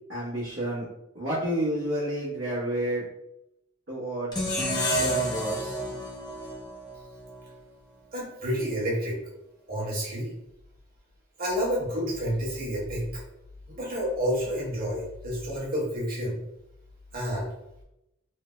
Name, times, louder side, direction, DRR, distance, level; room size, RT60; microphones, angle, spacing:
voice 1, 0.1-0.9 1.1-3.0 3.9-4.5 4.9-5.9, right 1 dB, 65° right, -11 dB, 1.0 m, -30 dB
sound 1, 4.3-7.5, right 1 dB, 20° left, 0.6 m, -30 dB
voice 2, 8.1-9.2 9.7-10.3 11.4-13.2 13.7-16.4 17.1-17.5, equal, 50° right, -5 dB, 1.3 m, -29 dB
3.3 x 2.1 x 3.0 m, 0.86 s
head